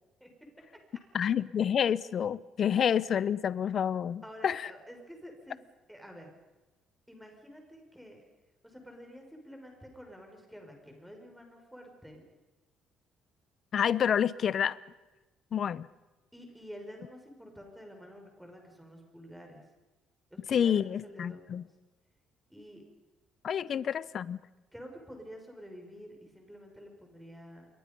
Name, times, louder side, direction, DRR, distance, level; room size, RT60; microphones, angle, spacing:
voice 1, 1.1-4.7 13.7-14.8 15.5-15.9 20.5-21.6 23.4-24.4, left 8 dB, 45° left, 0.8 m, -28 dB
voice 2, 4.2-5.6 5.9-6.3 7.1-8.2 8.6-12.2 16.3-19.6 20.3-21.6 22.5-22.8 23.7-23.8 24.7-27.7, equal, ahead, 5.8 m, -49 dB
28.0 x 23.0 x 5.4 m
cardioid pair, 145°, 0 cm